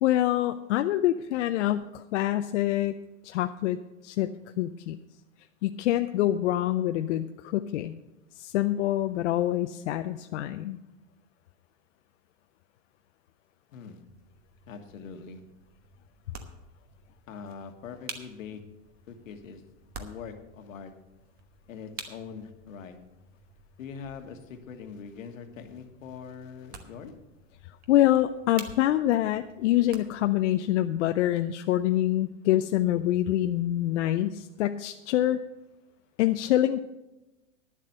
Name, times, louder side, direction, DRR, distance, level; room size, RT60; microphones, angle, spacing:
voice 1, 0.0-3.0 3.2-3.8 4.0-5.0 5.6-7.9 8.4-10.8 27.9-35.4 36.2-36.8, left 13 dB, 65° left, 8 dB, 0.6 m, -26 dB
voice 2, 13.7-14.0 14.7-15.4 17.3-18.6 19.1-19.6 20.0-20.9 21.7-23.0 23.8-27.1, left 6 dB, 80° left, 6 dB, 1.6 m, -42 dB
sound 1, 14.0-30.4, right 5 dB, 25° right, 1.0 m, -49 dB
10.5 x 7.5 x 6.6 m, 1.0 s
hypercardioid pair, 140°, 39 cm